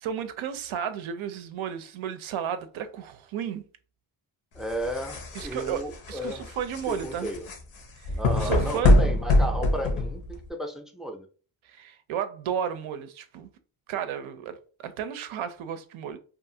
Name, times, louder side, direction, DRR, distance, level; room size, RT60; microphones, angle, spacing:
voice 1, 0.0-3.7 5.3-5.8 6.1-7.3 8.0-8.1 8.4-9.0 11.7-13.5 13.9-14.5 14.8-16.2, right 8 dB, 75° right, 0.6 m, -33 dB
voice 2, 4.5-6.5 6.9-7.5 8.1-11.3, right 1 dB, ahead, 0.4 m, -34 dB
sound 1, 4.6-10.5, left 1 dB, 90° left, 0.8 m, -24 dB
2.7 x 2.4 x 2.7 m
cardioid pair, 70°, 48 cm